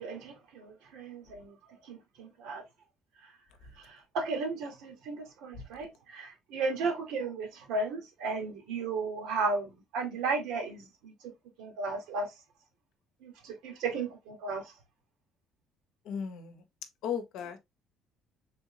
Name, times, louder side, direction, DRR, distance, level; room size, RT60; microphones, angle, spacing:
voice 1, 0.0-1.5 1.9-2.6 4.1-11.1 11.6-12.3 13.2-14.7, right 3 dB, 85° right, 1.2 m, -34 dB
voice 2, 16.1-16.5 17.0-17.6, left 7 dB, 75° left, 0.7 m, -35 dB
3.5 x 2.7 x 2.7 m
cardioid pair, 130°, 0 cm